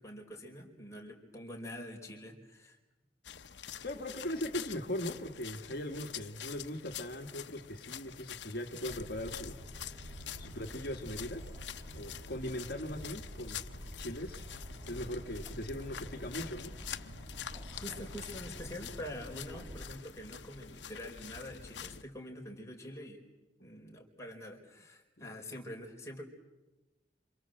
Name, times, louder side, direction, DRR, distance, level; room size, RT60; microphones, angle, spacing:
voice 1, 0.0-2.8 17.7-23.2 23.6-26.2, left 1 dB, 15° left, 0 dB, 4.8 m, -45 dB
sound 1, 3.2-22.0, left 9 dB, 85° left, 1.0 m, -47 dB
voice 2, 3.8-9.5 10.4-11.4 11.9-13.6 14.0-14.5 14.9-17.1 25.2-25.3, left 1 dB, 60° left, 3 dB, 1.8 m, -39 dB
sound 2, 8.9-19.9, equal, 20° right, 2.2 m, -47 dB
28.0 x 27.0 x 7.8 m, 1.1 s
head